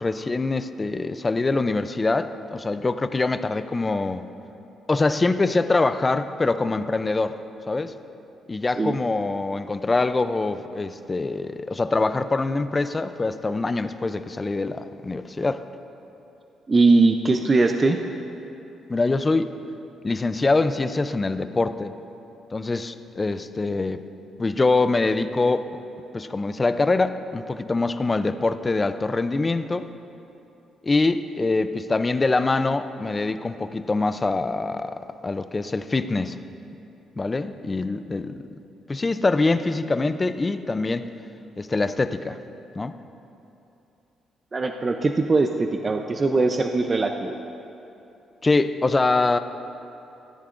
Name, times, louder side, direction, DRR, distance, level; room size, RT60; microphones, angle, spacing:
voice 1, 0.0-4.3 4.9-7.4 7.7-7.9 8.5-15.6 18.9-19.5 20.0-21.9 22.5-24.1 24.4-25.7 26.1-29.9 30.8-36.4 37.2-38.5 38.9-41.1 41.6-42.4 42.8-42.9 48.4-49.4, left 3 dB, 25° left, 11 dB, 0.4 m, -24 dB
voice 2, 16.7-18.0 44.5-47.4, right 3 dB, 30° right, 5 dB, 0.5 m, -20 dB
14.0 x 13.5 x 2.5 m, 2.9 s
cardioid pair, 90°, 0 cm